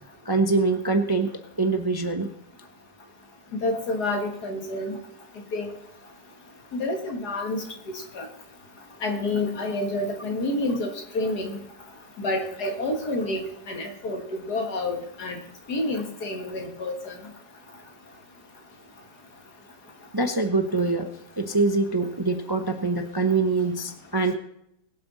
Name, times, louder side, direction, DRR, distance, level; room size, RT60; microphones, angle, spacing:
voice 1, 0.2-1.3 1.6-2.3 20.1-21.1 21.4-24.3, right 3 dB, 20° right, 5 dB, 0.6 m, -24 dB
voice 2, 3.6-5.0 5.5-5.7 6.7-7.6 8.1-8.3 9.0-11.6 12.2-13.4 13.7-14.2 14.5-15.4 15.7-17.1, left 2 dB, 70° left, 3 dB, 2.4 m, -28 dB
21.5 x 7.8 x 4.0 m, 0.76 s
omnidirectional pair, 1.8 m